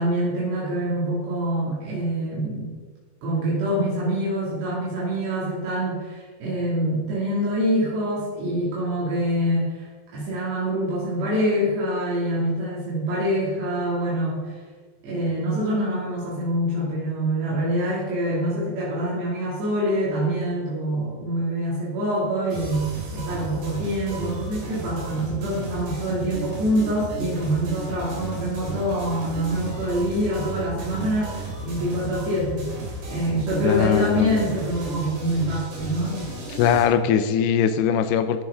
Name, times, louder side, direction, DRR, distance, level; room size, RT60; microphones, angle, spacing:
voice 1, 0.0-2.8 3.2-9.9 10.1-14.5 15.0-32.7 33.1-36.3, equal, 85° right, -7 dB, 4.8 m, -25 dB
sound 1, 22.5-36.8, right 2 dB, 60° right, 4.8 m, -34 dB
voice 2, 33.6-34.3 36.5-38.4, left 8 dB, 80° left, 9 dB, 2.7 m, -21 dB
15.0 x 10.5 x 3.7 m, 1.5 s
omnidirectional pair, 4.7 m